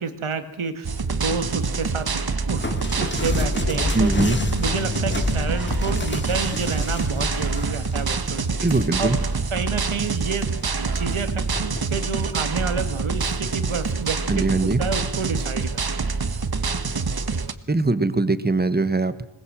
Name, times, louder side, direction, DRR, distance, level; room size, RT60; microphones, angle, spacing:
voice 1, 0.0-2.2 2.5-2.6 3.0-8.6 9.0-9.2 9.5-15.7 16.0-16.1, right 5 dB, 75° right, 10 dB, 2.1 m, -29 dB
sound 1, 0.8-17.5, right 4 dB, 50° right, 1.4 m, -26 dB
sound 2, 2.6-9.6 10.0-10.7 11.5-11.9, left 2 dB, 20° left, 2.3 m, -30 dB
voice 2, 3.9-4.4 8.6-9.2 14.3-14.8 17.7-19.2, right 2 dB, 20° right, 14 dB, 1.4 m, -21 dB
sound 3, 4.2-10.4, left 6 dB, 60° left, 4.2 m, -36 dB
21.0 x 20.0 x 7.7 m, 0.97 s
wide cardioid pair, 90°, 49 cm